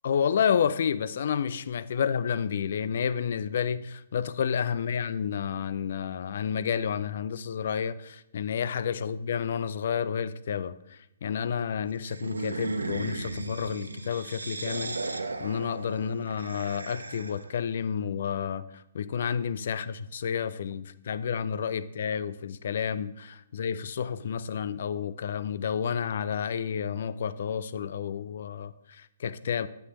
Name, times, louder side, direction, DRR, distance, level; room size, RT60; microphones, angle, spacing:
voice 1, 0.0-18.7 18.9-29.7, left 7 dB, 55° left, 0.4 m, -30 dB
sound 1, 12.1-17.5, right 3 dB, 80° right, 0.6 m, -36 dB
8.3 x 7.9 x 3.1 m
figure-of-eight pair, 125°, 0 cm